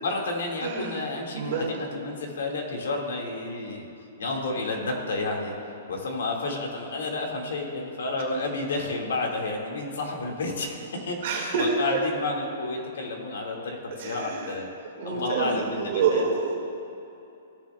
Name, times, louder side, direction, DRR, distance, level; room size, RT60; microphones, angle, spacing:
voice 1, 0.0-3.9 4.2-5.5 5.9-14.7 15.0-16.2, left 2 dB, 80° left, 1 dB, 1.8 m, -31 dB
voice 2, 0.6-1.0 1.3-1.8 11.2-12.0 13.9-14.5 15.0-16.6, right 5 dB, 50° right, -1 dB, 1.8 m, -27 dB
15.0 x 6.9 x 2.2 m, 2.8 s
hypercardioid pair, 170°, 0 cm